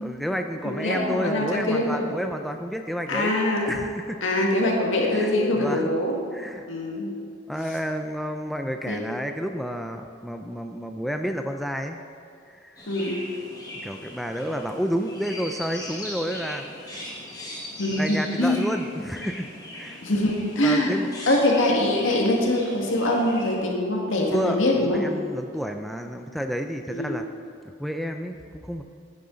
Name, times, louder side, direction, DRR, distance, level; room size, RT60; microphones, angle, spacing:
voice 1, 0.0-3.3 3.6-4.2 5.1-5.9 6.3-6.7 7.5-12.0 12.5-12.8 13.8-16.7 18.0-19.5 19.7-20.0 20.6-21.1 24.3-27.3 27.8-28.8, equal, ahead, 5 dB, 0.3 m, -30 dB
voice 2, 0.6-2.0 3.1-3.6 4.2-6.1 6.7-7.1 8.9-9.0 12.9-13.2 17.8-18.6 20.0-20.9 21.3-25.0 26.9-27.1, left 1 dB, 85° left, -1 dB, 1.9 m, -23 dB
Chirp tweet, 12.8-23.5, left 1 dB, 20° left, 1.8 m, -39 dB
10.5 x 10.5 x 3.9 m, 2.4 s
head